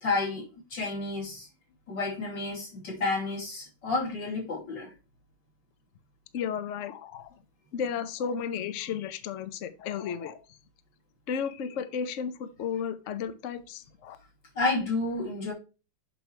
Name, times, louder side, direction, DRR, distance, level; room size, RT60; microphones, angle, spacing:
voice 1, 0.0-1.5 1.9-4.9 14.5-15.5, left 3 dB, 55° left, 3.3 m, -30 dB
voice 2, 6.3-7.3 7.7-10.4 11.3-14.2, left 7 dB, 90° left, 0.6 m, -33 dB
6.8 x 6.2 x 2.9 m
omnidirectional pair, 2.4 m